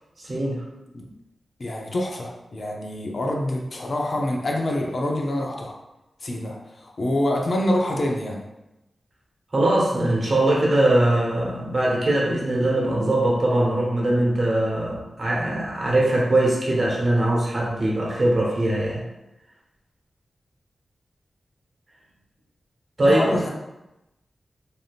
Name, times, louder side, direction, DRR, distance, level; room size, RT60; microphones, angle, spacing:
voice 1, 0.2-0.6 9.5-19.0 23.0-23.2, right 1 dB, 45° right, -3 dB, 0.9 m, -21 dB
voice 2, 1.6-5.7 6.2-8.4 23.0-23.5, left 1 dB, 55° left, 0 dB, 0.6 m, -26 dB
3.3 x 2.7 x 2.4 m, 0.95 s
wide cardioid pair, 80°, 0 cm